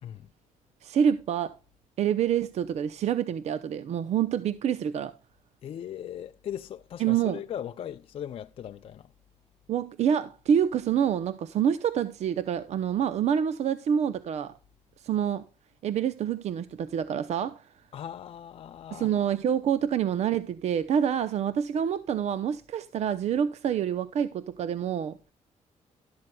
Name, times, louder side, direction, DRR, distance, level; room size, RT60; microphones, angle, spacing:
voice 1, 0.8-1.6 2.0-5.1 7.0-7.4 9.7-14.5 15.0-15.4 15.8-17.7 18.9-25.2, right 8 dB, 60° right, 0.6 m, -27 dB
voice 2, 5.6-9.1 17.9-19.1, left 10 dB, 45° left, 0.4 m, -38 dB
12.0 x 12.0 x 2.2 m
cardioid pair, 150°, 13 cm